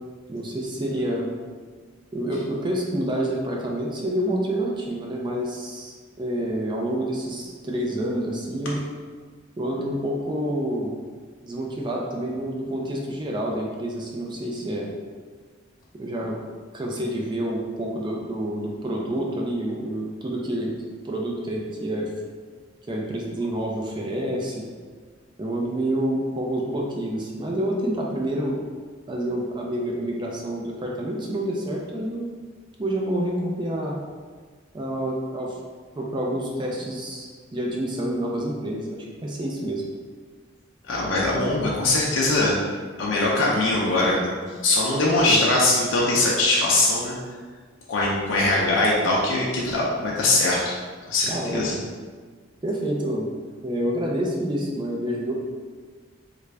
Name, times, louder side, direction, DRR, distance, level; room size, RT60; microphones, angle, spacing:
voice 1, 0.3-1.3 2.1-8.8 9.6-10.9 11.4-14.9 16.0-16.4 16.7-20.7 21.0-22.1 22.9-24.7 25.4-28.6 29.1-32.3 32.8-34.0 34.7-35.6 36.0-39.8 45.2-45.4 51.3-51.7 52.6-53.3 53.6-55.3, right 1 dB, 25° right, -2 dB, 0.4 m, -28 dB
voice 2, 40.9-42.6 43.0-44.3 44.6-47.1 47.9-50.8 51.1-51.7, left 2 dB, 85° left, -4 dB, 0.6 m, -21 dB
3.3 x 2.5 x 3.2 m, 1.5 s
head